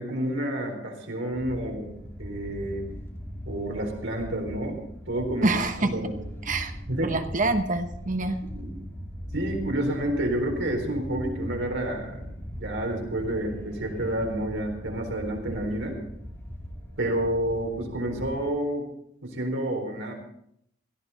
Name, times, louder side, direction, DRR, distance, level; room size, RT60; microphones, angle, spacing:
voice 1, 0.0-1.9 2.2-2.8 3.5-5.5 5.8-6.2 6.9-7.1 8.5-8.7 9.3-16.0 17.0-18.9 19.2-20.1, right 1 dB, 70° right, 2 dB, 3.9 m, -29 dB
sound 1, 1.3-18.5, equal, 15° left, 2.7 m, -40 dB
voice 2, 5.4-5.9 6.4-6.7 7.0-8.4, right 2 dB, 40° right, 7 dB, 1.2 m, -26 dB
17.0 x 14.0 x 4.1 m, 0.72 s
head